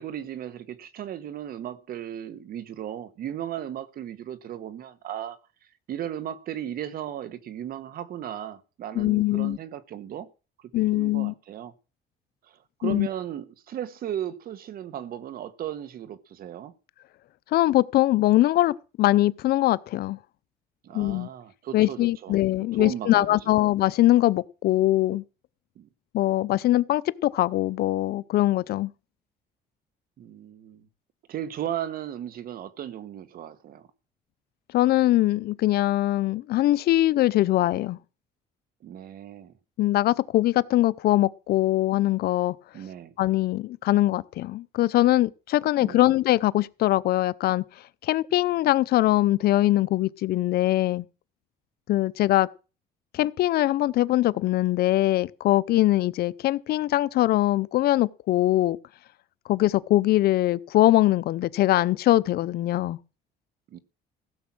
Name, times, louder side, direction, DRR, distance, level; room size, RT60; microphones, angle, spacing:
voice 1, 0.0-5.4 5.9-10.3 10.6-11.7 12.5-16.7 20.8-22.4 22.8-23.6 25.8-25.9 30.2-30.9 31.3-33.9 38.8-39.5 42.7-43.1 45.8-46.2 63.7-63.8, right 10 dB, 60° right, 1.4 m, -36 dB
voice 2, 8.9-9.6 10.7-11.3 12.8-13.1 17.5-20.2 20.9-21.3 21.7-25.2 26.1-28.9 34.7-38.0 39.8-42.5 43.2-47.6 48.0-51.1 51.9-52.5 53.1-58.8 59.5-63.0, left 15 dB, 65° left, 0.6 m, -22 dB
16.0 x 7.2 x 6.1 m
cardioid pair, 110°, 17 cm